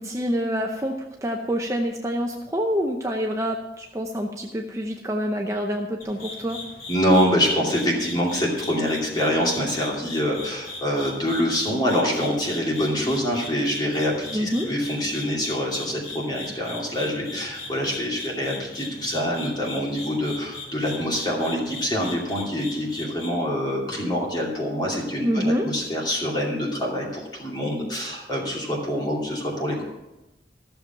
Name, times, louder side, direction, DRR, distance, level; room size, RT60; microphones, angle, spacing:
voice 1, 0.0-6.6 14.3-14.7 25.2-25.7, equal, 15° right, 1 dB, 0.7 m, -26 dB
sound 1, 6.0-23.3, left 3 dB, 55° left, 3.4 m, -39 dB
voice 2, 6.9-29.8, equal, 25° left, -2 dB, 2.7 m, -25 dB
14.5 x 6.9 x 5.8 m, 1.0 s
head